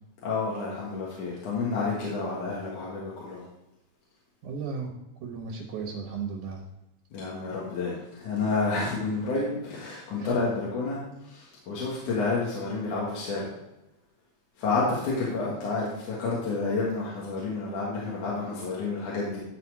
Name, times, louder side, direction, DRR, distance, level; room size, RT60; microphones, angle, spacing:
voice 1, 0.2-3.4 7.1-11.0 11.3-13.5 14.6-19.4, left 3 dB, 75° left, -6 dB, 3.0 m, -30 dB
voice 2, 4.4-4.9 5.2-6.6 10.2-10.4, right 5 dB, 75° right, 1 dB, 2.6 m, -35 dB
11.5 x 4.2 x 4.8 m, 0.92 s
omnidirectional pair, 3.6 m